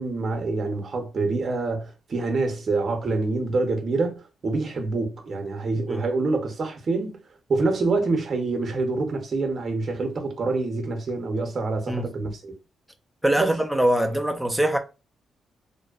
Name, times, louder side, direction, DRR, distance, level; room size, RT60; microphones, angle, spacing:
voice 1, 0.0-7.2 7.5-12.5 13.4-13.5, right 3 dB, 45° right, 0.7 m, -26 dB
voice 2, 13.2-14.8, right 1 dB, 5° right, 0.4 m, -22 dB
2.6 x 2.1 x 2.3 m
cardioid pair, 110°, 0 cm